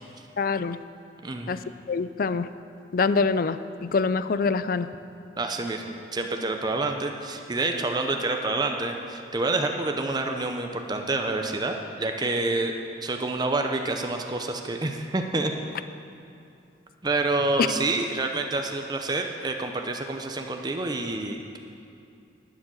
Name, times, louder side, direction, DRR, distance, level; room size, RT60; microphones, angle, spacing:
voice 1, 0.4-0.8 1.5-1.6 1.9-2.5 2.9-4.9, left 4 dB, 50° left, 13 dB, 0.4 m, -25 dB
voice 2, 1.2-1.5 5.4-12.7 13.0-15.5 17.0-21.6, right 2 dB, 25° right, 4 dB, 0.6 m, -28 dB
11.5 x 9.8 x 6.3 m, 2.6 s
head